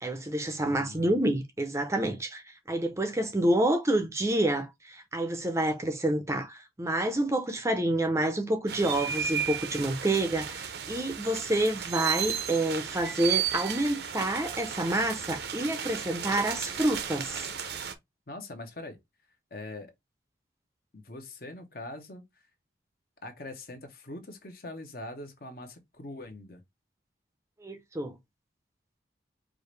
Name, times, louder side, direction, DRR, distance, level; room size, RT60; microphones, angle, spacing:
voice 1, 0.0-17.5 27.6-28.1, right 1 dB, 15° right, 0.5 m, -28 dB
voice 2, 0.6-1.2 18.3-19.0 19.5-19.9 20.9-22.2 23.2-26.6, left 2 dB, 50° left, 1.0 m, -42 dB
sound 1, 8.7-17.9, right 8 dB, 65° right, 0.6 m, -34 dB
4.8 x 2.5 x 3.2 m
head